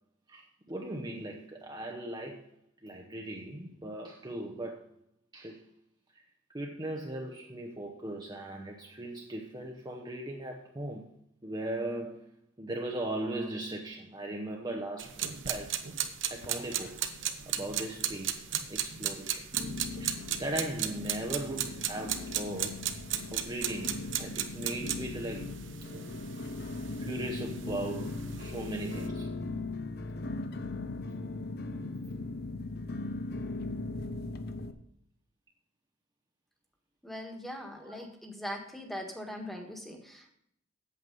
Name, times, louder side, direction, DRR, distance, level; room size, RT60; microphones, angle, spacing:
voice 1, 0.3-2.5 2.8-4.9 5.3-5.6 6.2-6.3 6.5-11.1 11.4-12.3 12.6-15.8 16.3-17.1 17.5-18.4 18.7-19.5 20.0-22.8 23.3-25.5 27.0-29.4 37.8-38.0, right 1 dB, 20° right, 0.8 m, -38 dB
sound 1, 15.0-29.1, right 9 dB, 70° right, 0.9 m, -36 dB
sound 2, 16.4-17.3 17.6-18.2 18.7-18.8 19.5-34.7, left 2 dB, 55° left, 0.7 m, -39 dB
voice 2, 37.0-40.3, equal, ahead, 1.5 m, -41 dB
8.4 x 7.8 x 5.4 m
head